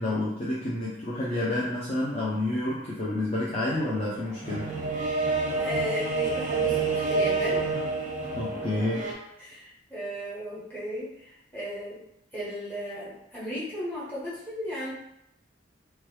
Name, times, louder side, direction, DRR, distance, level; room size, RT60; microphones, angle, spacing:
voice 1, 0.0-4.8 8.4-9.1, left 1 dB, 30° left, -7 dB, 0.5 m, -29 dB
sound 1, 3.7-9.1, right 3 dB, 40° right, 0.6 m, -28 dB
voice 2, 5.6-7.6 9.4-12.0 12.3-14.9, equal, 10° left, -9 dB, 1.1 m, -35 dB
3.1 x 2.3 x 3.1 m, 0.80 s
head